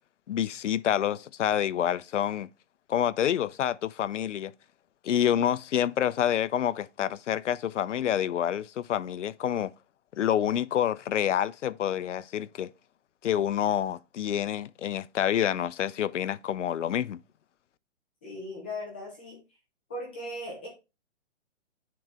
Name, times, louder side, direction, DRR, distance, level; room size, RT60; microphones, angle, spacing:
voice 1, 0.3-2.5 2.9-4.5 5.0-9.7 10.1-12.7 13.2-17.2, left 10 dB, 75° left, 0.6 m, -28 dB
voice 2, 18.2-19.4 19.9-20.7, left 1 dB, 10° left, 0.6 m, -38 dB
9.2 x 4.0 x 3.4 m
hypercardioid pair, 170°, 36 cm